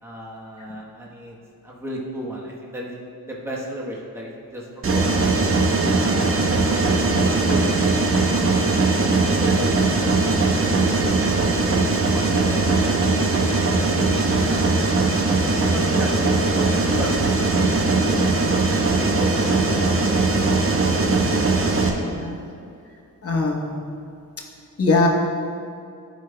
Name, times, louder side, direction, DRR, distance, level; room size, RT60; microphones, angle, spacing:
voice 1, 0.0-1.4 1.6-2.9 3.3-4.7 4.9-5.3 5.9-7.2 7.5-8.8 9.3-10.1 12.1-13.0 14.4-15.0 15.7-17.9 18.9-19.7, equal, 5° right, -4 dB, 1.1 m, -34 dB
Mechanisms, 4.8-21.9, right 3 dB, 40° right, 0.8 m, -20 dB
voice 2, 22.0-22.4 23.2-23.7 24.8-25.1, left 3 dB, 40° left, -1 dB, 1.1 m, -22 dB
12.0 x 5.2 x 2.2 m, 2.5 s
cardioid pair, 95°, 35 cm